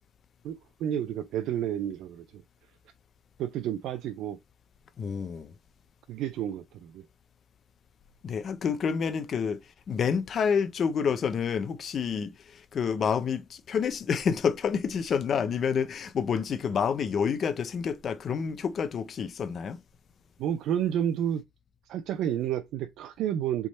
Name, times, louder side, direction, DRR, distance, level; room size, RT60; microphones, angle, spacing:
voice 1, 0.4-2.4 3.4-4.4 6.1-7.0 20.4-21.4 21.9-23.7, right 10 dB, 85° right, 0.4 m, -30 dB
voice 2, 5.0-5.5 8.2-19.8, left 6 dB, 55° left, 0.6 m, -28 dB
3.6 x 3.0 x 4.1 m
cardioid pair, 90°, 0 cm